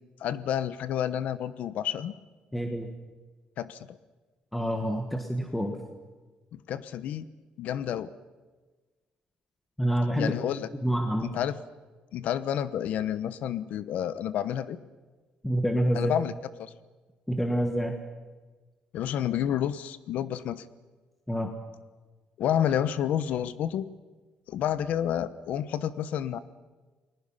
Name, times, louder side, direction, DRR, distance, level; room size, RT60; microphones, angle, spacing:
voice 1, 0.2-2.2 3.6-4.0 6.5-7.3 7.6-8.1 10.2-10.7 11.2-11.6 12.1-14.8 15.9-16.3 16.6-16.7 18.9-20.6 22.4-23.9 24.5-26.4, left 10 dB, 65° left, 15 dB, 1.0 m, -29 dB
voice 2, 2.5-2.9 4.5-5.7 9.8-10.3 10.8-11.3 15.4-16.1 17.3-17.9 21.3-21.5, equal, 5° left, 4 dB, 1.5 m, -27 dB
30.0 x 20.5 x 5.7 m, 1.3 s
cardioid pair, 180°, 3 cm